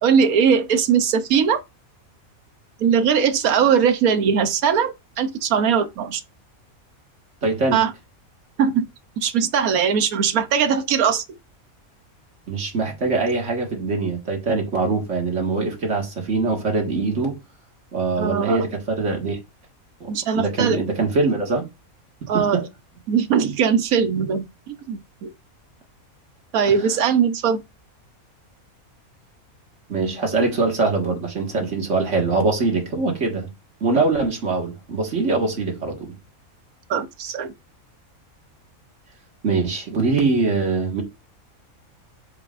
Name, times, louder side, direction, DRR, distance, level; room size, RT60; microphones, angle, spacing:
voice 1, 0.0-1.6 2.8-6.2 7.7-7.9 8.6-8.9 9.2-11.2 18.2-18.6 20.1-20.8 22.3-22.6 23.1-25.3 26.5-27.6 36.9-37.5, right 7 dB, 80° right, 1.3 m, -20 dB
voice 2, 7.4-7.8 12.5-17.3 17.9-19.4 20.0-20.1 20.4-21.7 22.3-22.6 29.9-33.5 33.8-36.1 39.4-41.0, right 3 dB, 55° right, 2.0 m, -23 dB
7.0 x 5.4 x 2.5 m
omnidirectional pair, 1.5 m